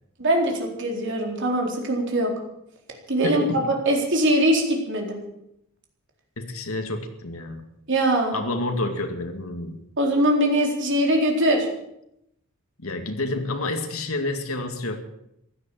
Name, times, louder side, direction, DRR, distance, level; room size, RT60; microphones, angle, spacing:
voice 1, 0.2-2.3 3.1-5.2 7.9-8.4 10.0-11.7, right 1 dB, 60° right, 1 dB, 4.0 m, -22 dB
voice 2, 3.2-3.6 6.4-7.6 8.3-9.8 12.8-15.1, left 2 dB, 75° left, 4 dB, 2.1 m, -29 dB
16.0 x 11.5 x 7.6 m, 0.80 s
head